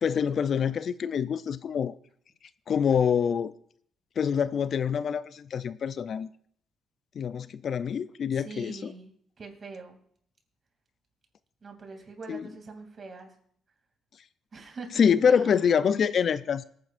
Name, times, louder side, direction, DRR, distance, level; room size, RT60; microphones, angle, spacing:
voice 1, 0.0-1.9 2.7-3.5 4.2-6.3 7.2-8.9 12.3-12.5 14.9-16.6, left 7 dB, 55° left, 0.4 m, -25 dB
voice 2, 8.3-9.1 9.4-10.0 11.6-13.3 14.5-15.6, right 4 dB, 40° right, 2.6 m, -43 dB
23.5 x 9.4 x 2.5 m
cardioid pair, 90°, 0 cm